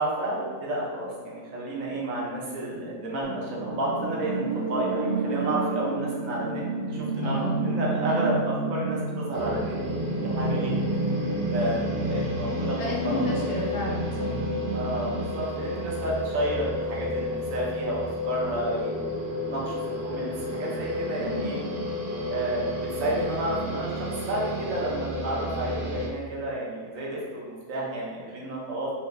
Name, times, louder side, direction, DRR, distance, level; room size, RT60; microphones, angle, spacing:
voice 1, 0.0-10.7 11.5-11.8 12.1-13.5 14.7-19.0 19.5-21.6 22.3-28.9, right 1 dB, 80° right, -4 dB, 1.2 m, -31 dB
sound 1, 3.2-15.2, right 2 dB, 35° right, 1.6 m, -30 dB
voice 2, 7.2-7.7 7.9-8.3 12.7-14.3 21.2-22.0, left 1 dB, 65° left, -4 dB, 1.0 m, -33 dB
sound 2, 9.3-26.1, left 1 dB, 55° right, 0.6 m, -32 dB
3.1 x 2.8 x 3.2 m, 1.5 s
omnidirectional pair, 1.4 m